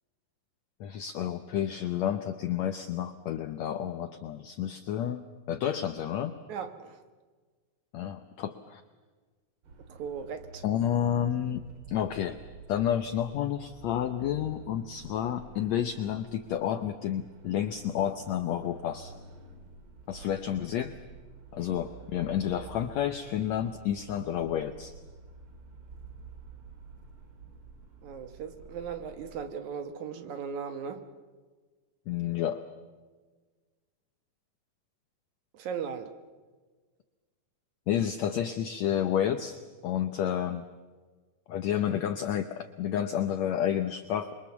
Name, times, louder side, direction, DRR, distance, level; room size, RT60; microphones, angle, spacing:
voice 1, 0.8-6.3 7.9-8.8 10.6-12.4 12.7-19.1 20.1-20.9 21.5-24.9 32.1-32.6 37.9-40.6 41.5-44.3, left 10 dB, 75° left, 9 dB, 1.6 m, -30 dB
voice 2, 6.5-7.0 9.9-10.6 28.0-31.0 35.5-36.1, right 7 dB, 65° right, 9 dB, 2.3 m, -37 dB
sound 1, 9.6-29.5, right 4 dB, 45° right, 2.5 m, -50 dB
27.0 x 23.0 x 7.1 m, 1.4 s
omnidirectional pair, 4.1 m